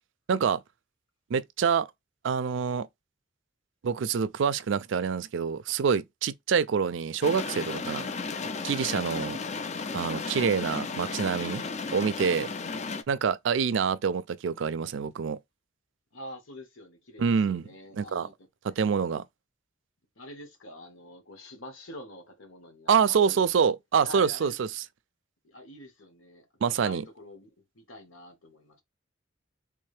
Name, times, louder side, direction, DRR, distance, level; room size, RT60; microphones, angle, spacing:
voice 1, 0.3-0.6 1.3-1.9 2.2-2.9 3.8-8.1 8.6-9.4 9.9-11.6 11.9-12.5 13.1-15.4 17.2-17.6 18.0-18.3 18.8-19.2 22.9-24.7 26.6-27.0, right 6 dB, 65° right, 0.4 m, -26 dB
sound 1, 7.2-13.0, left 4 dB, 35° left, 0.4 m, -34 dB
voice 2, 16.1-18.5 20.1-23.6 24.0-24.6 25.4-28.8, left 1 dB, 85° left, 1.4 m, -46 dB
3.5 x 2.7 x 3.2 m
head